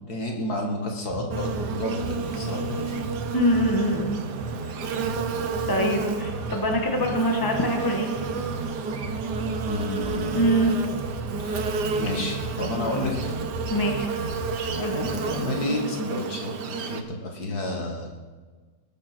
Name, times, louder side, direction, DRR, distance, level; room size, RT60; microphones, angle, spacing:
voice 1, 0.0-3.0 9.7-10.7 11.4-11.6 12.0-13.3 14.9-18.1, left 2 dB, 70° left, 1 dB, 2.4 m, -31 dB
sound 1, 1.1-15.6, right 3 dB, 50° left, 3.5 m, -35 dB
Buzz, 1.3-17.0, right 4 dB, 85° right, 1.6 m, -31 dB
voice 2, 3.3-4.2 5.0-5.1 5.7-8.1 10.3-10.8 13.7-14.1 14.8-15.0, equal, 15° left, 1 dB, 1.7 m, -24 dB
19.5 x 6.9 x 6.1 m, 1.4 s
omnidirectional pair, 1.7 m